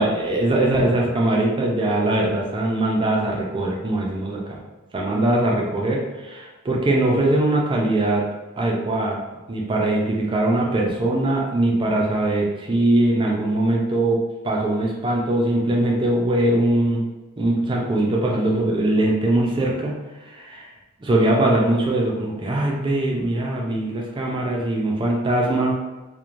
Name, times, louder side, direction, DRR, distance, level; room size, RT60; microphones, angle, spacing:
voice 1, 0.0-4.6 4.9-8.2 8.6-9.2 9.5-14.2 14.4-17.0 17.4-19.9 20.2-20.7 21.0-25.7, right 1 dB, 25° right, -2 dB, 0.3 m, -21 dB
2.9 x 2.1 x 2.5 m, 1.2 s
head